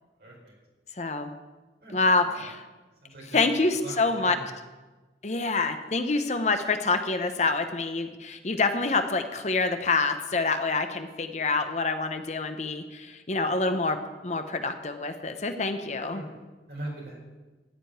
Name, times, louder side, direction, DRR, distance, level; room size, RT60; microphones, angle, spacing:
voice 1, 0.2-0.5 1.8-2.5 3.0-3.4 3.7-4.5 16.0-16.4 16.7-17.2, right 1 dB, 65° right, -2 dB, 4.2 m, -41 dB
voice 2, 1.0-1.3 1.9-2.6 3.3-4.4 5.2-14.0 14.2-16.2, left 3 dB, 40° left, 8 dB, 0.8 m, -26 dB
13.5 x 5.2 x 9.1 m, 1.2 s
head